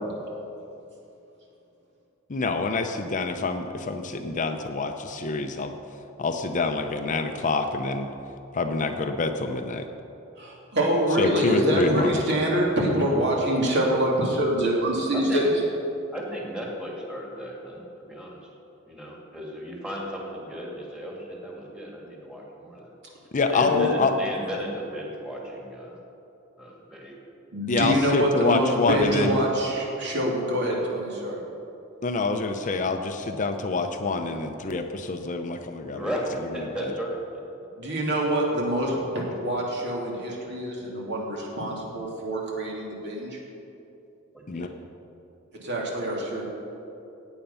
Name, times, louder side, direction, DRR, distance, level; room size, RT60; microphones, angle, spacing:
voice 1, 2.3-5.8 6.2-8.1 8.5-9.8 11.2-12.2 23.3-24.1 27.7-29.4 32.0-36.1 36.5-36.9 44.5-44.7, left 3 dB, 40° left, 6 dB, 0.7 m, -26 dB
voice 2, 10.4-15.5 23.6-23.8 27.5-31.4 37.8-43.4 45.6-46.5, right 1 dB, 55° right, -2 dB, 2.7 m, -25 dB
voice 3, 16.1-18.4 18.9-22.9 23.5-26.0 26.6-27.1 35.9-36.2 36.5-37.4 44.5-44.7, equal, 5° right, -2 dB, 2.3 m, -35 dB
16.0 x 9.1 x 5.6 m, 2.9 s
head